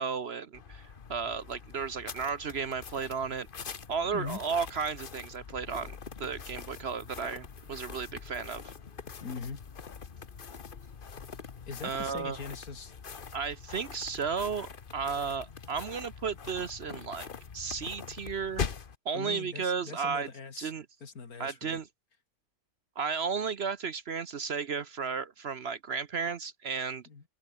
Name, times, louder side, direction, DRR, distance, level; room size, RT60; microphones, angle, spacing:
voice 1, 0.0-3.5 3.9-8.7 11.8-12.4 13.3-17.3 17.5-18.6 19.0-20.3 20.6-20.9 21.4-21.9 23.0-27.0, right 5 dB, 50° right, 0.8 m, -34 dB
sound 1, 0.5-19.0, left 6 dB, 35° left, 1.0 m, -43 dB
voice 2, 9.2-9.6 11.7-12.9 19.1-20.7 21.0-21.8 27.1-27.2, left 5 dB, 55° left, 2.8 m, -41 dB
open air
omnidirectional pair, 1.9 m